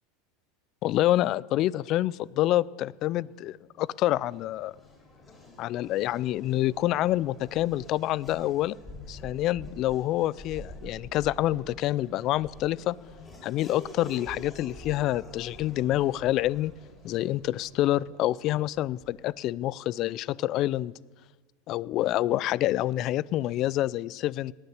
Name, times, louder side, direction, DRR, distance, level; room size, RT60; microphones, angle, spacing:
voice 1, 0.8-4.7 5.6-8.8 9.1-13.0 13.4-16.7 17.0-20.9 21.7-24.5, left 14 dB, 50° left, 23 dB, 0.3 m, -27 dB
Race car auto racing / Accelerating revving vroom, 3.7-19.4, left 1 dB, 20° left, 5.1 m, -47 dB
19.0 x 6.8 x 8.1 m, 1.4 s
hypercardioid pair, 95°, 0 cm